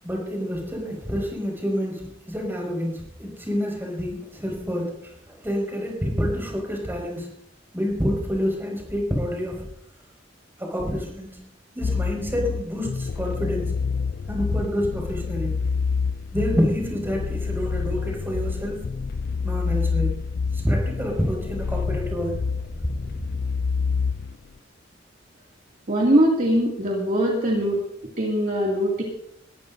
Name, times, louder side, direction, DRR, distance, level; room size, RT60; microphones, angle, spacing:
voice 1, 0.0-4.9 5.3-7.3 7.7-9.6 10.6-11.4 11.7-13.7 14.3-15.5 16.3-18.8 19.4-20.1 20.5-22.3, equal, 10° right, 0 dB, 5.7 m, -27 dB
sound 1, 11.8-24.4, left 5 dB, 55° left, 0.4 m, -27 dB
voice 2, 25.9-27.8 28.2-29.0, right 1 dB, 45° right, -2 dB, 2.4 m, -21 dB
21.5 x 14.5 x 2.7 m, 0.70 s
head